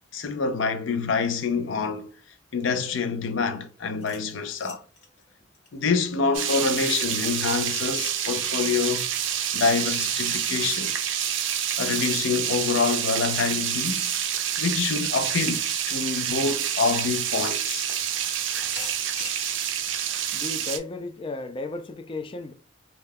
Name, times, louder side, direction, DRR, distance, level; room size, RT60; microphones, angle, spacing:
voice 1, 0.1-2.1 2.5-4.8 5.7-9.1 9.5-10.9 11.8-14.1 14.6-17.9, left 5 dB, 90° left, 0.5 m, -26 dB
sound 1, 4.0-6.8 7.2-17.4 17.9-19.4, left 3 dB, 60° left, 0.9 m, -47 dB
sound 2, 6.3-20.8, right 9 dB, 75° right, 0.4 m, -28 dB
voice 2, 20.3-22.5, left 2 dB, 30° left, 0.3 m, -34 dB
2.2 x 2.2 x 3.4 m
head